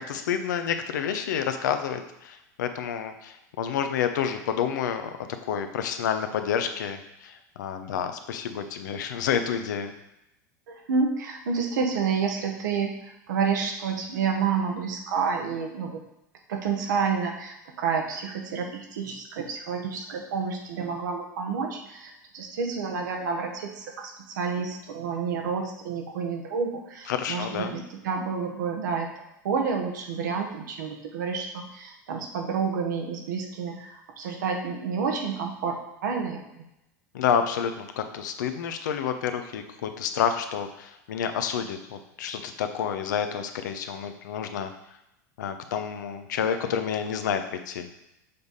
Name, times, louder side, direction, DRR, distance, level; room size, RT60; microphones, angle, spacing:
voice 1, 0.1-5.1 5.5-9.9 27.1-27.7 37.1-44.7 45.4-48.1, left 8 dB, 75° left, 8 dB, 0.7 m, -29 dB
voice 2, 10.7-16.0 16.5-29.1 29.4-36.6, right 5 dB, 75° right, 2 dB, 1.1 m, -29 dB
6.8 x 3.5 x 4.1 m, 0.87 s
hypercardioid pair, 90°, 10 cm